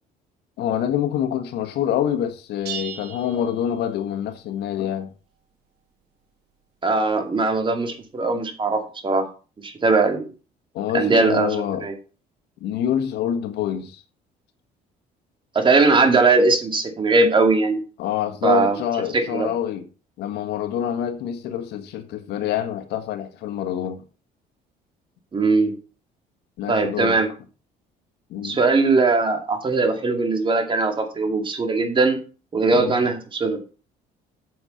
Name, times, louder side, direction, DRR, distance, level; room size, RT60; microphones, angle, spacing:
voice 1, 0.6-5.1 10.7-11.9 12.6-14.0 18.0-19.8 20.2-24.0 26.6-27.2 28.3-28.6 32.7-33.0, left 10 dB, 80° left, 1.6 m, -26 dB
sound 1, 2.7-4.2, right 8 dB, 80° right, 2.3 m, -37 dB
voice 2, 6.8-9.2 9.6-10.3 10.9-11.9 15.5-17.8 18.4-18.8 19.1-19.5 25.3-25.7 26.7-27.3 28.4-32.2 32.5-33.7, right 3 dB, 30° right, 2.4 m, -20 dB
8.1 x 7.3 x 5.8 m
cardioid pair, 110°, 17 cm